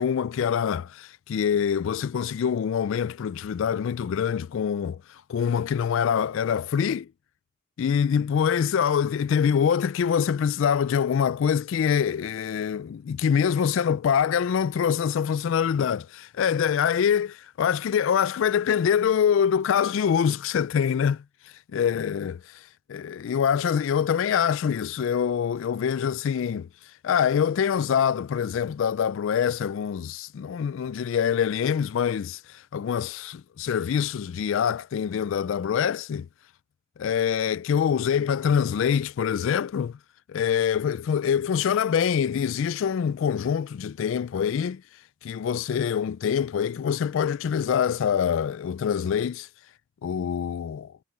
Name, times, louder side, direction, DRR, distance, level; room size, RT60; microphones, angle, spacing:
voice 1, 0.0-7.1 7.8-21.2 21.7-26.7 27.0-36.3 37.0-40.0 40.3-44.8 45.2-49.5 50.0-50.9, left 7 dB, 60° left, 0.3 m, -25 dB
head